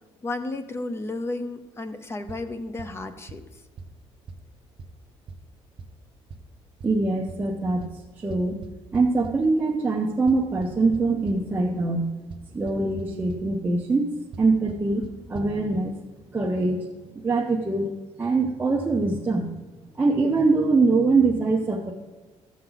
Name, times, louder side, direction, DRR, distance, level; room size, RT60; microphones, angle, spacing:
voice 1, 0.2-3.4, left 2 dB, 20° left, 10 dB, 0.7 m, -32 dB
sound 1, 2.3-2.4 2.8-2.9 3.3-3.4 3.8-3.9 4.3-4.4 4.8-4.9 5.3-5.4 5.8-5.9 6.3-6.4 6.8-6.9 7.3-7.4 7.8-7.9 8.3-9.3 10.3-11.4 12.3-12.4 12.7-13.0 13.3-13.4 14.3-14.4 14.7-14.8 15.0-15.1 15.3-15.4, right 5 dB, 45° right, 0.9 m, -38 dB
voice 2, 6.8-7.8 8.2-8.6 8.9-12.1 12.5-14.1 14.4-16.0 16.3-16.9 17.2-17.9 18.2-19.5 19.9-21.9, right 3 dB, 15° right, -2 dB, 0.8 m, -23 dB
14.0 x 7.4 x 3.9 m, 1.3 s
cardioid pair, 150°, 11 cm